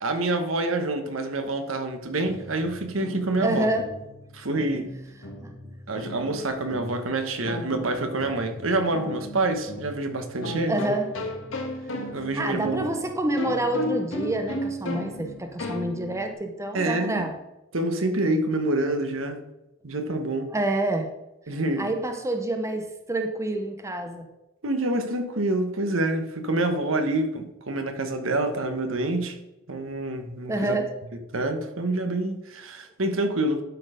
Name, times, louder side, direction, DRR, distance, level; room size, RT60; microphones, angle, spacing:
voice 1, 0.0-3.7 4.3-4.9 5.9-10.9 12.1-12.9 16.7-17.3 17.7-19.4 19.8-20.5 21.5-21.9 24.6-29.4 29.7-30.8 31.3-33.6, right 2 dB, 70° right, 6 dB, 1.2 m, -27 dB
sound 1, 2.1-16.3, left 1 dB, 70° left, 1.5 m, -36 dB
voice 2, 3.4-3.8 5.4-5.5 10.7-11.1 12.3-17.3 20.5-21.1 21.8-24.3 30.5-30.9, right 1 dB, 15° right, 5 dB, 0.7 m, -27 dB
11.5 x 4.4 x 5.1 m, 0.94 s
head